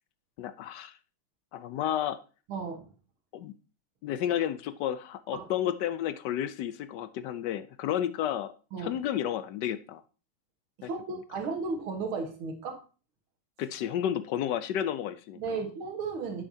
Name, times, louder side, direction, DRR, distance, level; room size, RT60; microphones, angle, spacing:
voice 1, 0.4-0.9 1.5-2.2 3.3-3.5 4.0-8.5 8.8-10.0 10.8-10.9 13.6-15.4, left 10 dB, 75° left, 13 dB, 1.0 m, -31 dB
voice 2, 2.5-2.9 5.3-5.5 8.7-9.0 10.8-12.8 15.4-16.4, right 4 dB, 85° right, 5 dB, 2.3 m, -34 dB
9.8 x 7.9 x 2.8 m, 0.35 s
omnidirectional pair, 2.3 m